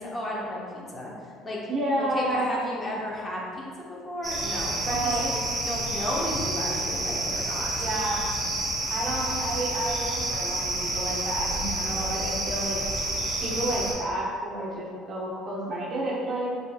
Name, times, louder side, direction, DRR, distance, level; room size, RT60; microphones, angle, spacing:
voice 1, 0.0-1.6 2.0-7.7, left 1 dB, 25° left, -4 dB, 0.9 m, -34 dB
voice 2, 1.7-2.8 4.8-5.4 7.7-8.4 8.9-12.8 13.4-16.5, right 1 dB, 45° right, -4 dB, 0.9 m, -30 dB
sound 1, 4.2-13.9, right 2 dB, 15° right, 1.1 m, -29 dB
4.2 x 3.7 x 2.3 m, 2.2 s
supercardioid pair, 90°, 0 cm